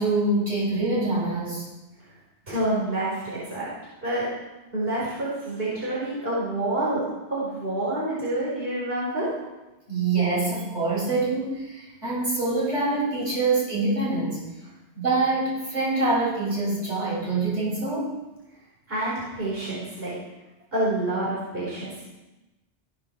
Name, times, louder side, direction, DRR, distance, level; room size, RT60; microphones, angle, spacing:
voice 1, 0.0-1.7 9.9-14.4 14.9-18.1, right 3 dB, 80° right, -7 dB, 6.7 m, -25 dB
voice 2, 2.5-3.7 4.0-4.3 4.7-9.3 18.9-20.1 20.7-22.1, right 1 dB, 55° right, -8 dB, 4.8 m, -28 dB
16.5 x 7.5 x 6.7 m, 1.1 s
omnidirectional pair, 1.2 m